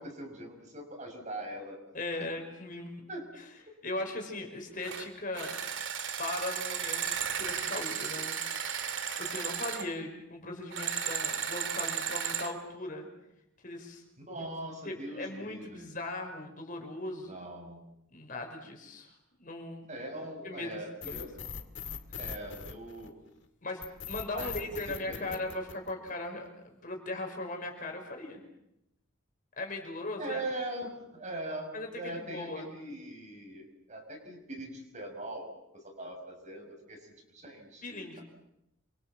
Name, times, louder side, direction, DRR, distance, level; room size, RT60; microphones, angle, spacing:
voice 1, 0.0-1.8 3.1-3.3 14.3-15.9 17.3-17.8 19.9-21.5 22.2-23.2 24.3-25.4 30.2-38.2, right 1 dB, 35° right, 3 dB, 6.3 m, -41 dB
voice 2, 1.9-3.0 3.4-3.5 3.8-5.6 6.2-8.8 9.2-13.1 13.6-14.0 14.8-17.4 18.1-19.1 19.4-19.9 20.4-20.7 21.1-21.3 23.6-28.4 29.6-30.4 31.7-32.7 37.8-38.2, left 2 dB, 40° left, 3 dB, 5.5 m, -38 dB
sound 1, 4.8-5.1 5.3-9.9 10.7-12.5, right 8 dB, 65° right, 2.7 m, -34 dB
sound 2, 21.0-23.3 23.8-26.3, left 6 dB, 65° left, 2.2 m, -40 dB
28.5 x 24.5 x 7.5 m, 0.83 s
head